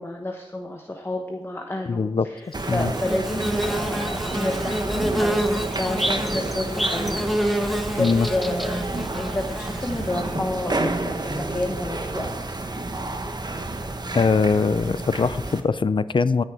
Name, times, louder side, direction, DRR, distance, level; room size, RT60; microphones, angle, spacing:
voice 1, 0.0-8.8 9.1-12.3, left 1 dB, 25° left, 3 dB, 1.0 m, -30 dB
voice 2, 1.9-2.9 8.0-8.3 10.8-10.9 14.1-16.4, left 4 dB, 60° left, 15 dB, 0.5 m, -22 dB
sound 1, 2.5-15.6, right 2 dB, 45° right, 1.2 m, -30 dB
Bird / Buzz, 2.6-10.3, right 1 dB, ahead, 0.9 m, -28 dB
13.5 x 6.6 x 4.9 m, 1.2 s
wide cardioid pair, 70°, 9 cm